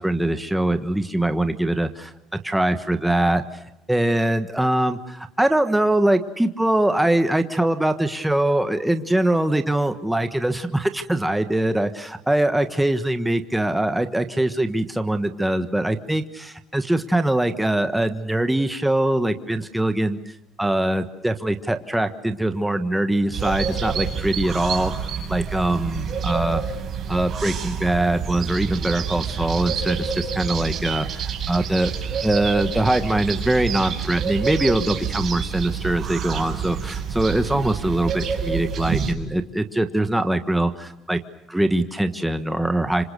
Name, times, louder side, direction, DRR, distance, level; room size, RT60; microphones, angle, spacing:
voice 1, 0.0-2.1 2.4-3.4 3.9-20.2 20.6-24.9 25.3-26.6 27.1-31.9 32.2-41.2 41.5-43.0, right 1 dB, 5° right, 8 dB, 1.3 m, -22 dB
sound 1, 23.3-39.1, right 7 dB, 35° right, 6.1 m, -28 dB
27.0 x 26.0 x 6.8 m, 0.92 s
cardioid pair, 135°, 0 cm